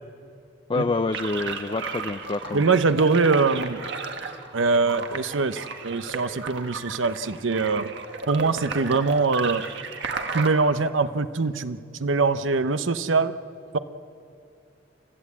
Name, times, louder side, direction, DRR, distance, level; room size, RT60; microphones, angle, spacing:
voice 1, 0.7-2.6, left 3 dB, 25° left, 8 dB, 0.5 m, -27 dB
sound 1, 1.1-10.5, right 4 dB, 65° right, 1.6 m, -34 dB
voice 2, 2.5-3.8 4.5-8.0 8.3-9.7 10.3-13.3 13.7-13.8, right 4 dB, 80° right, 12 dB, 0.8 m, -23 dB
29.0 x 13.5 x 8.5 m, 2.5 s
head